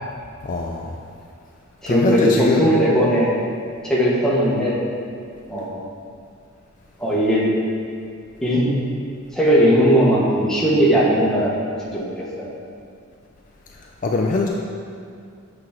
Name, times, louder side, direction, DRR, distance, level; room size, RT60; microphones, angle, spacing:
voice 1, 0.4-0.9 1.9-2.8 14.0-14.5, left 3 dB, 40° left, 0 dB, 0.4 m, -22 dB
voice 2, 1.8-3.4 3.8-4.8 5.5-5.8 7.0-7.5 8.4-8.7 9.3-11.6 11.9-12.5, equal, 5° left, -6 dB, 1.1 m, -18 dB
7.8 x 4.5 x 3.6 m, 2.3 s
head